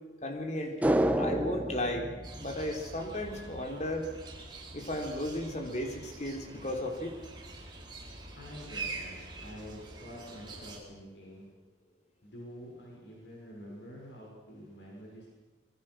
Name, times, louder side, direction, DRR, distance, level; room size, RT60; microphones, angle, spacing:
voice 1, 0.2-0.9 1.1-4.1 4.7-7.1, left 1 dB, 40° left, 3 dB, 3.6 m, -35 dB
sound 1, 0.8-3.3 3.6-3.7, right 1 dB, 10° right, 1.1 m, -30 dB
sound 2, 2.2-10.8, right 3 dB, 25° right, 4.6 m, -45 dB
voice 2, 8.4-11.5 12.2-15.3, equal, 70° left, -2 dB, 6.3 m, -47 dB
26.0 x 22.5 x 6.4 m, 1.3 s
head